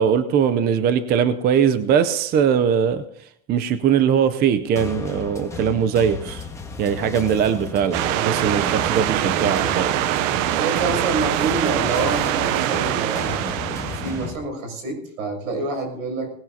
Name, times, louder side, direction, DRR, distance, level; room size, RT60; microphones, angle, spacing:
voice 1, 0.0-3.0 3.5-6.4 6.8-9.9, right 8 dB, 25° right, 11 dB, 0.6 m, -20 dB
sound 1, 4.8-14.4, left 5 dB, 5° left, 1.5 m, -34 dB
sound 2, 7.9-14.3, right 13 dB, 70° right, 0.8 m, -23 dB
voice 2, 10.5-16.3, right 3 dB, 85° right, 3 dB, 6.8 m, -27 dB
19.0 x 17.5 x 2.8 m, 0.66 s
supercardioid pair, 150°, 40 cm